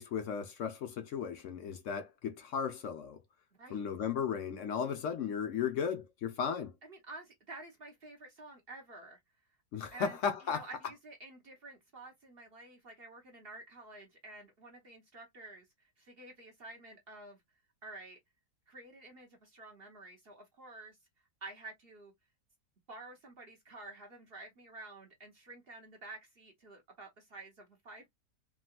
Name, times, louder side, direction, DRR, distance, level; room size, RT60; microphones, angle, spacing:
voice 1, 0.0-3.2 3.7-6.7 9.7-10.7, left 7 dB, 65° left, 0.7 m, -35 dB
voice 2, 3.5-3.9 6.8-9.2 9.9-17.4 17.8-18.2 18.7-21.0 21.4-22.1 22.9-28.1, right 2 dB, 45° right, 0.9 m, -50 dB
3.7 x 2.3 x 2.3 m
omnidirectional pair, 1.8 m